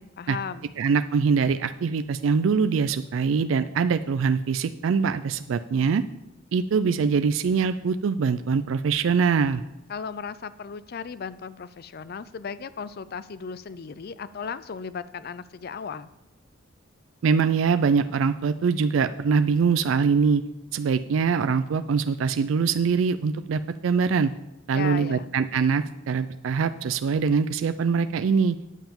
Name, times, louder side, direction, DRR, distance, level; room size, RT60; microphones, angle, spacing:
voice 1, 0.2-0.7 9.9-16.1 24.7-25.3, left 6 dB, 50° left, 15 dB, 0.4 m, -36 dB
voice 2, 0.8-6.0 6.5-9.6 17.2-20.4 20.7-24.3 24.7-28.6, right 5 dB, 70° right, 11 dB, 0.4 m, -23 dB
9.1 x 5.7 x 7.1 m, 0.90 s
head